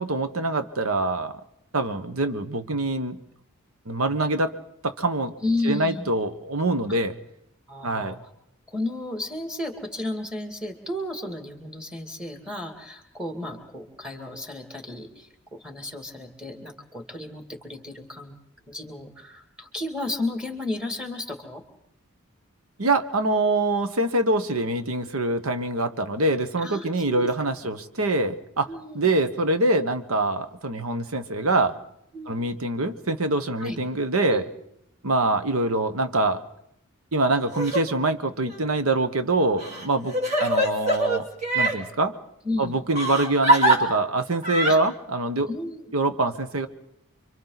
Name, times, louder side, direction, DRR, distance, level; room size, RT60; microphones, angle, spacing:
voice 1, 0.0-1.3 1.7-3.2 3.9-4.5 4.8-5.3 5.6-7.1 7.8-8.2 22.8-28.7 28.9-31.7 32.3-34.4 35.0-36.4 37.1-40.1 40.4-41.3 41.5-42.1 42.6-45.5 45.9-46.7, right 2 dB, 80° right, 9 dB, 1.3 m, -24 dB
voice 2, 5.4-6.1 7.7-8.2 8.7-18.3 18.7-21.6 26.6-27.5 28.7-29.1 32.1-32.4 33.6-33.8 34.3-34.5 42.4-42.7 44.6-44.8 45.5-45.8, left 2 dB, 5° right, 3 dB, 2.5 m, -33 dB
Crying sobbing, 37.5-37.8 38.5-38.6 39.6-41.8 42.9-43.8 44.4-44.7, right 1 dB, 35° right, 3.0 m, -23 dB
29.5 x 24.5 x 4.1 m, 0.75 s
head